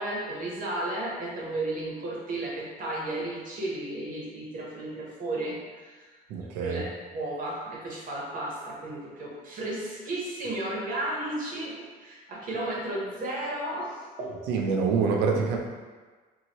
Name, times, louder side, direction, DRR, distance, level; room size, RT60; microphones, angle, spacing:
voice 1, 0.0-6.1 6.4-14.6, right 1 dB, 55° right, -4 dB, 0.9 m, -34 dB
voice 2, 6.3-6.8 14.5-15.6, right 5 dB, 90° right, 1 dB, 0.5 m, -26 dB
2.7 x 2.7 x 2.9 m, 1.4 s
cardioid pair, 110°, 17 cm